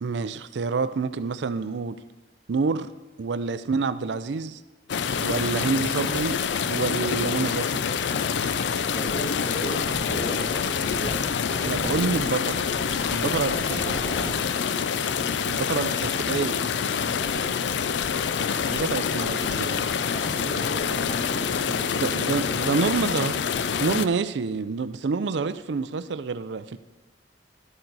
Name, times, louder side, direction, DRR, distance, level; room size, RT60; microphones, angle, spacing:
voice 1, 0.0-2.0 2.5-2.9 3.2-4.6 5.2-6.4 6.7-7.8 11.6-12.6 13.1-13.9 15.5-16.7 18.7-19.9 21.9-23.4 23.8-26.8, right 4 dB, 75° right, 13 dB, 0.4 m, -27 dB
sound 1, 4.9-24.1, left 6 dB, 75° left, 0.4 m, -26 dB
voice 2, 8.9-12.2 13.1-14.4 17.0-17.5 20.1-22.5, right 1 dB, 25° left, -3 dB, 2.5 m, -37 dB
sound 2, 9.8-10.5 10.8-14.3, equal, 10° left, 3.0 m, -37 dB
12.0 x 8.9 x 4.0 m, 1.1 s
head